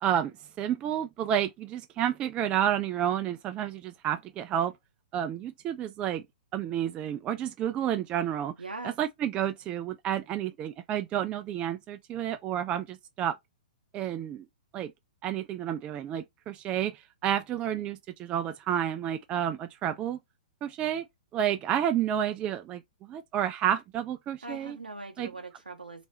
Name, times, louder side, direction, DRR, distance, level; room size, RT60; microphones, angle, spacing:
voice 1, 0.0-4.7 5.1-6.2 6.5-8.5 8.8-13.4 13.9-14.5 14.7-14.9 15.2-20.2 20.6-21.1 21.3-24.8 25.2-25.3, right 10 dB, 25° right, 0.3 m, -30 dB
voice 2, 8.6-9.0 24.4-26.1, right 2 dB, 90° right, 0.7 m, -41 dB
3.3 x 2.9 x 2.7 m
figure-of-eight pair, 115°, 5 cm